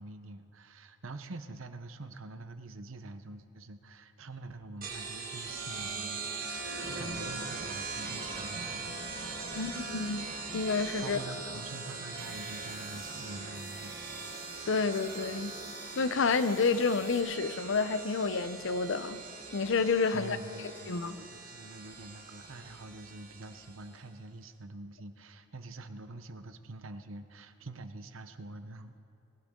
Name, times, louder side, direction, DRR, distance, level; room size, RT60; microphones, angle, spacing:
voice 1, 0.0-9.0 11.0-14.0 20.1-29.0, right 2 dB, 75° right, 9 dB, 0.8 m, -46 dB
sound 1, 4.8-24.0, right 4 dB, 45° right, 1.9 m, -41 dB
voice 2, 9.5-10.3 10.5-11.2 14.7-15.5 16.0-19.2 19.5-20.4 20.9-21.2, left 4 dB, 65° left, 12 dB, 0.6 m, -29 dB
sound 2, 12.1-17.2, left 2 dB, 20° left, 1.9 m, -54 dB
19.5 x 16.0 x 3.8 m, 2.5 s
head